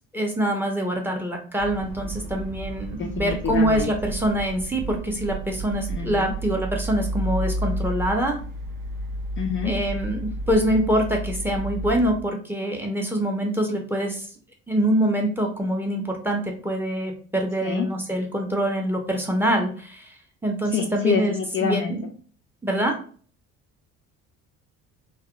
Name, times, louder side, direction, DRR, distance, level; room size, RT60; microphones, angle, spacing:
voice 1, 0.1-8.4 9.6-14.3 14.7-20.1 20.4-22.1 22.6-23.0, right 1 dB, 5° right, 2 dB, 0.8 m, -25 dB
sound 1, 1.6-12.2, right 1 dB, 60° right, 0.8 m, -32 dB
voice 2, 2.9-3.9 5.9-6.3 9.4-9.7 17.6-17.9 20.7-22.0, left 7 dB, 30° left, 2 dB, 0.4 m, -27 dB
3.4 x 2.3 x 2.2 m, 0.42 s
hypercardioid pair, 55°, 39 cm